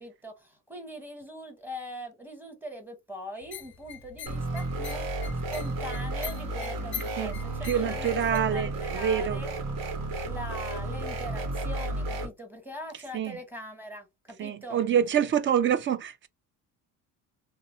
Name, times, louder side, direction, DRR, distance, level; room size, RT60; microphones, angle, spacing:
voice 1, 0.0-5.1 5.5-9.5 10.3-14.8, equal, 5° right, 0.9 m, -41 dB
sound 1, 3.4-8.4, left 10 dB, 35° left, 0.4 m, -43 dB
sound 2, 4.3-12.3, right 2 dB, 80° right, 1.1 m, -33 dB
voice 2, 7.7-9.4 13.1-13.4 14.4-16.3, right 8 dB, 35° right, 0.4 m, -26 dB
2.9 x 2.1 x 2.6 m
cardioid pair, 115°, 34 cm